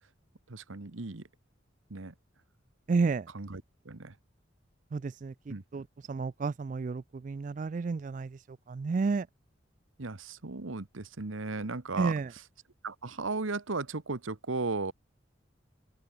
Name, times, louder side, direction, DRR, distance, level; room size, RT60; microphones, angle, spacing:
voice 1, 0.5-1.2 1.9-2.1 3.3-4.1 5.5-5.6 10.0-12.1 12.8-14.9, right 3 dB, 85° right, 1.2 m, -36 dB
voice 2, 2.9-3.3 4.9-8.4 8.7-9.3 12.0-12.3, right 4 dB, 40° right, 0.3 m, -31 dB
open air
head